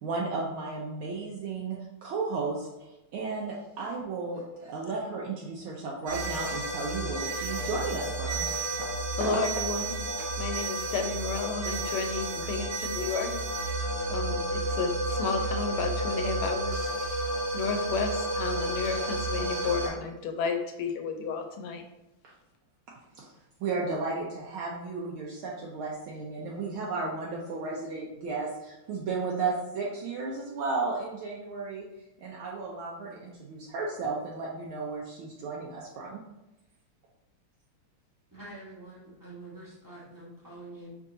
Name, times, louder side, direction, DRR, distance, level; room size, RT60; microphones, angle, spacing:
voice 1, 0.0-8.5 9.2-9.4 19.8-19.9 22.2-22.3 23.1-23.3 23.6-31.8 32.2-36.2, right 3 dB, 75° right, -3 dB, 1.4 m, -34 dB
sound 1, 6.1-19.9, right 2 dB, 55° right, 1.1 m, -31 dB
voice 2, 9.2-9.8 10.4-13.3 14.1-16.8 17.5-21.8, left 5 dB, 80° left, 5 dB, 1.5 m, -32 dB
voice 3, 38.3-41.0, right 1 dB, 15° right, -8 dB, 0.9 m, -46 dB
5.4 x 3.5 x 2.7 m, 0.97 s
omnidirectional pair, 2.4 m